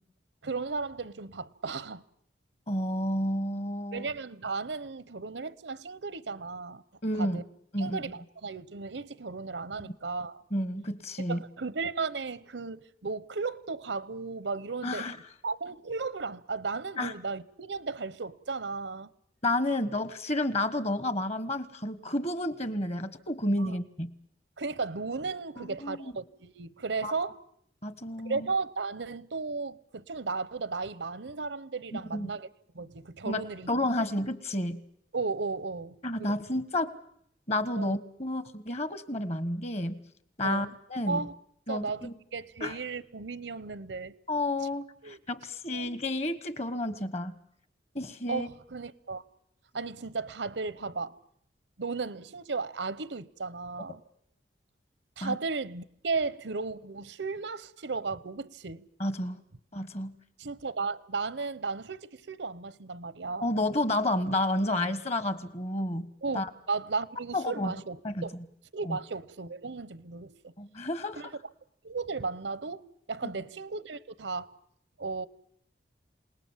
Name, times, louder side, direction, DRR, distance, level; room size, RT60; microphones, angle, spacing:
voice 1, 0.4-2.0 3.9-6.8 7.2-7.4 7.8-10.4 11.3-15.1 15.4-19.1 23.6-23.8 24.6-27.4 28.2-32.5 32.7-33.7 34.0-34.1 35.1-36.4 37.8-38.0 40.4-40.8 41.1-41.3 41.7-44.1 45.0-45.2 45.7-45.9 48.3-49.2 49.7-51.2 51.8-54.0 55.2-58.8 60.4-63.5 66.2-68.4 68.7-70.5 71.1-71.3 71.8-74.5 75.0-75.3, right 4 dB, 85° right, 0.9 m, -35 dB
voice 2, 2.7-4.0 7.0-7.4 7.7-8.0 9.8-9.9 10.5-11.4 14.8-15.2 17.0-17.1 19.4-24.1 25.6-26.1 27.0-27.1 27.8-28.5 31.9-32.3 33.3-34.8 36.0-36.9 37.5-40.0 40.4-41.2 41.7-42.1 42.6-42.7 44.3-47.4 47.9-48.5 55.2-55.4 59.0-59.4 59.7-60.2 63.4-66.1 66.3-66.5 67.3-67.7 68.0-68.2 68.9-69.0 70.6-71.2, left 1 dB, 35° left, 1.3 m, -31 dB
27.5 x 19.0 x 7.3 m
head